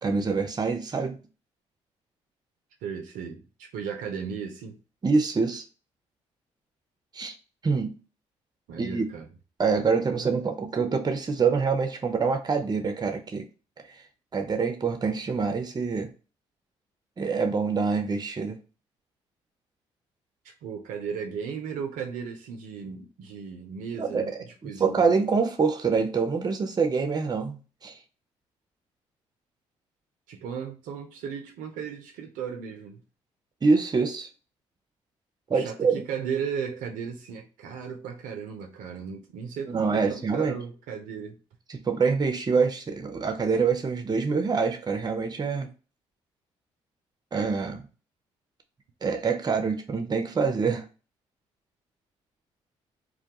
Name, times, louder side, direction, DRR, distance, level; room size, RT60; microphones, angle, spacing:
voice 1, 0.0-1.2 5.0-5.6 7.1-7.4 7.6-7.9 8.8-9.1 9.6-13.5 14.3-16.1 17.2-18.6 24.0-28.0 33.6-34.3 35.5-36.0 39.7-40.6 41.7-45.7 47.3-47.9 49.0-50.9, right 5 dB, 30° right, 0.6 m, -25 dB
voice 2, 2.8-4.8 8.7-9.3 20.4-25.1 30.3-33.0 35.5-41.4, right 7 dB, 75° right, 0.5 m, -36 dB
2.2 x 2.2 x 2.8 m
hypercardioid pair, 50°, 14 cm